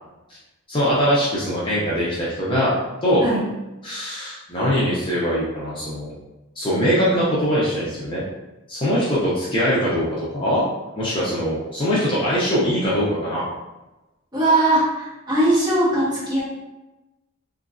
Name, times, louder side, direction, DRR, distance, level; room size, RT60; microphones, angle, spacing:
voice 1, 0.7-2.8 3.0-3.3 3.8-6.1 6.6-8.2 8.7-10.6 11.0-13.5, equal, 20° left, -8 dB, 0.5 m, -22 dB
voice 2, 14.3-16.4, right 1 dB, 20° right, -9 dB, 1.0 m, -20 dB
3.0 x 2.5 x 2.4 m, 1.0 s
head